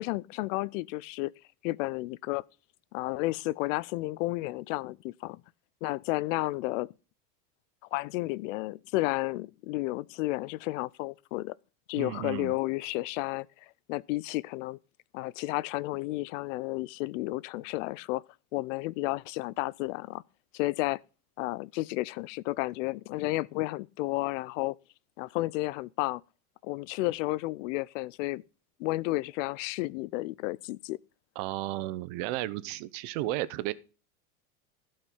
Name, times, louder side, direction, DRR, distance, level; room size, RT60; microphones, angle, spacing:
voice 1, 0.0-1.3 1.6-2.4 2.9-5.4 5.8-6.9 7.9-11.5 11.9-13.5 13.9-14.8 15.1-18.2 18.5-20.2 20.5-21.0 21.4-24.8 25.2-26.2 26.6-28.4 28.8-31.0, left 20 dB, 55° left, 0.5 m, -32 dB
voice 2, 12.0-12.5 31.3-33.7, right 16 dB, 55° right, 1.0 m, -33 dB
15.5 x 5.6 x 5.5 m
supercardioid pair, 140°, 45 cm